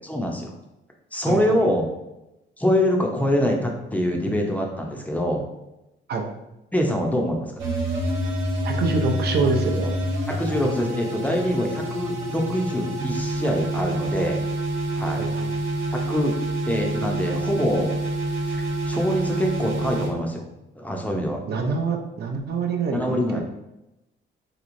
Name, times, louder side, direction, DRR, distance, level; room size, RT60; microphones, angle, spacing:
voice 1, 0.0-0.6 1.1-1.9 2.6-5.4 6.7-7.5 10.4-14.4 15.0-15.2 15.9-16.4 16.7-17.9 18.5-20.5 20.8-21.4 22.9-23.4, equal, 5° left, 0 dB, 0.5 m, -24 dB
voice 2, 1.3-1.6 6.1-6.3 8.6-10.0 15.2-15.5 21.5-23.4, right 4 dB, 55° right, 3 dB, 0.6 m, -26 dB
sound 1, 7.6-20.1, right 1 dB, 75° right, 1.1 m, -27 dB
3.0 x 3.0 x 2.5 m, 0.92 s
cardioid pair, 90°, 20 cm